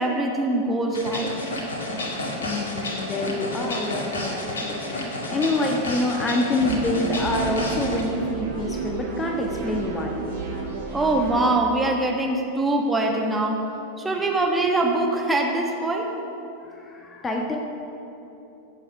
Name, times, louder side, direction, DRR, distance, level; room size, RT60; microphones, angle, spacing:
voice 1, 0.0-1.3 10.9-13.6 14.0-16.1, right 2 dB, 10° right, 0 dB, 1.6 m, -23 dB
sound 1, 0.9-8.0, left 1 dB, 65° left, 2.1 m, -30 dB
voice 2, 2.4-10.2 16.8-17.6, left 2 dB, 15° left, 1 dB, 1.4 m, -27 dB
sound 2, 6.6-11.6, right 5 dB, 60° right, 2.9 m, -31 dB
16.5 x 7.8 x 6.6 m, 2.9 s
figure-of-eight pair, 90°, 0 cm